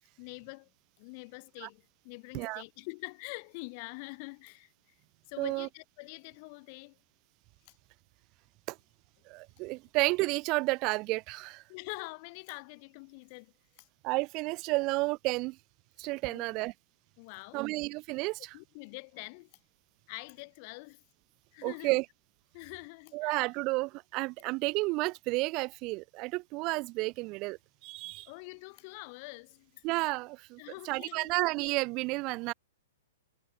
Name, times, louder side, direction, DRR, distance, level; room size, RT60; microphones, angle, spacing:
voice 1, 0.2-0.7 1.0-5.0 5.3-7.0 7.7-7.8 11.7-13.9 16.3-16.4 17.2-17.7 18.5-19.6 20.1-21.0 21.5-22.0 22.5-23.4 28.1-29.8 30.6-31.3, left 31 dB, 45° left, 6.9 m, -45 dB
voice 2, 5.4-5.7 8.7-8.8 9.3-11.6 14.0-15.6 16.0-16.7 17.5-18.5 21.6-22.0 23.1-28.3 29.8-30.6 30.8-32.5, right 24 dB, 35° right, 1.3 m, -31 dB
hypercardioid pair, 115°, 0 cm